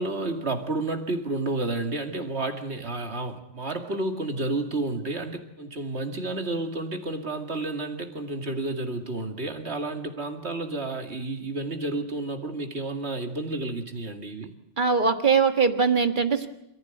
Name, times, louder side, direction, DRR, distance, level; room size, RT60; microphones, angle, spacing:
voice 1, 0.0-14.5, right 2 dB, 65° right, 5 dB, 2.6 m, -31 dB
voice 2, 14.8-16.5, right 5 dB, 45° right, 7 dB, 1.7 m, -21 dB
27.5 x 15.0 x 9.3 m, 0.84 s
omnidirectional pair, 1.2 m